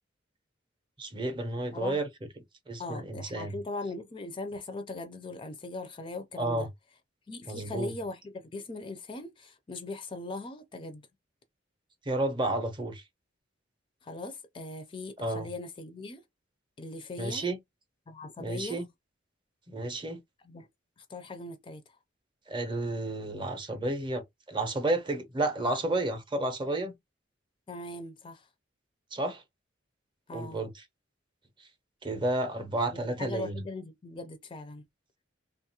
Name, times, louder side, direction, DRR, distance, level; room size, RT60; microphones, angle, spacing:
voice 1, 1.0-2.1 2.7-3.6 6.4-6.7 7.5-7.9 12.1-13.0 15.2-15.5 17.2-17.6 18.4-18.9 19.7-20.2 22.5-26.9 29.1-29.4 30.3-30.8 32.0-33.6, right 2 dB, 25° right, 0.6 m, -31 dB
voice 2, 2.8-6.7 7.3-11.1 14.0-16.2 16.8-17.5 18.1-18.8 20.4-20.7 21.0-22.0 27.7-28.5 30.3-30.6 32.9-34.8, left 2 dB, 25° left, 0.4 m, -40 dB
2.9 x 2.3 x 2.8 m
head